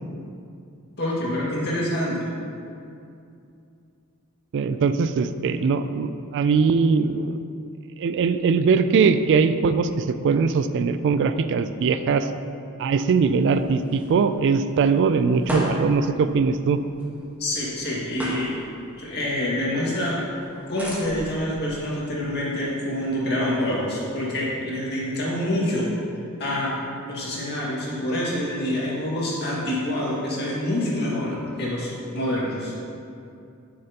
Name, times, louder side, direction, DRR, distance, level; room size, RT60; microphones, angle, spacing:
voice 1, 1.0-2.2 17.4-18.6 19.0-20.2 20.7-25.9 26.4-26.7 27.1-32.7, left 1 dB, 50° left, -5 dB, 1.9 m, -26 dB
voice 2, 4.5-7.4 8.0-12.3 12.8-16.8, right 5 dB, 55° right, 11 dB, 0.3 m, -21 dB
sound 1, 13.1-24.4, equal, 10° right, 1.2 m, -38 dB
10.5 x 6.6 x 2.9 m, 2.5 s
head